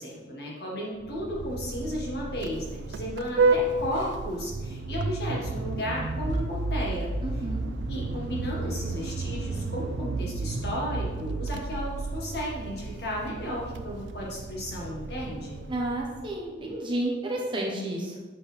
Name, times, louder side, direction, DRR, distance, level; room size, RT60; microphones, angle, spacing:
voice 1, 0.0-7.4 7.9-15.6, left 1 dB, 60° left, -4 dB, 1.7 m, -34 dB
Vehicle horn car horn honking, 1.0-16.4, right 3 dB, 75° right, 0.4 m, -32 dB
sound 1, 5.6-13.8 14.2-16.8, left 1 dB, 80° left, 1.4 m, -40 dB
voice 2, 7.2-7.6 15.7-18.2, right 1 dB, 25° right, -2 dB, 1.0 m, -31 dB
7.5 x 4.3 x 3.4 m, 1.3 s
head